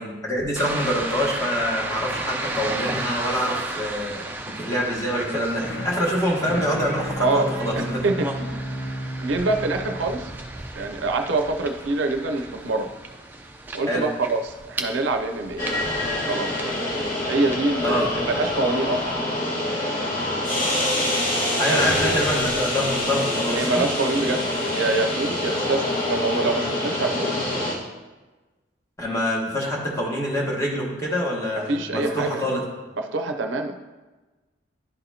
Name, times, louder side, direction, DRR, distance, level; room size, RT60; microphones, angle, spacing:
voice 1, 0.0-4.2 4.5-8.0 13.9-14.0 17.8-18.1 21.6-23.9 29.0-32.6, equal, 15° left, -3 dB, 1.2 m, -25 dB
sound 1, 0.6-19.1, right 2 dB, 10° right, 0.4 m, -35 dB
sound 2, 5.3-11.4, equal, 70° left, 0.8 m, -34 dB
voice 2, 7.8-8.3 9.2-10.3 10.8-12.9 13.7-15.7 16.3-16.7 17.3-18.1 18.4-19.0 21.6-22.1 23.5-27.4 31.6-32.5 33.0-33.8, right 2 dB, 80° right, 6 dB, 0.5 m, -25 dB
sound 3, 15.6-27.7, left 1 dB, 45° left, 1.3 m, -25 dB
11.0 x 4.1 x 2.8 m, 1.2 s
head